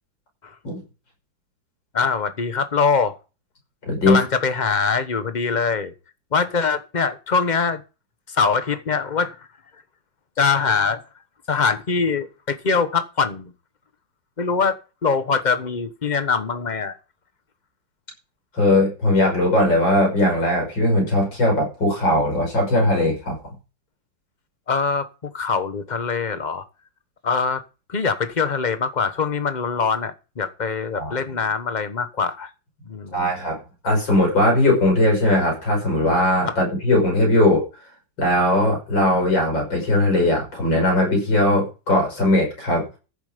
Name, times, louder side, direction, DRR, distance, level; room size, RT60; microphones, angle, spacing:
voice 1, 1.9-3.2 4.1-5.9 6.3-7.8 8.3-9.4 10.4-11.0 11.5-13.5 14.4-16.9 24.7-26.6 27.2-27.6 27.9-32.5 32.8-33.1 36.5-36.6, left 5 dB, 30° left, 10 dB, 1.1 m, -23 dB
voice 2, 3.9-4.2 18.5-23.4 30.9-31.1 33.1-37.6 38.2-42.8, left 1 dB, 80° left, 1 dB, 6.6 m, -19 dB
14.5 x 7.3 x 5.1 m, 0.31 s
omnidirectional pair, 2.0 m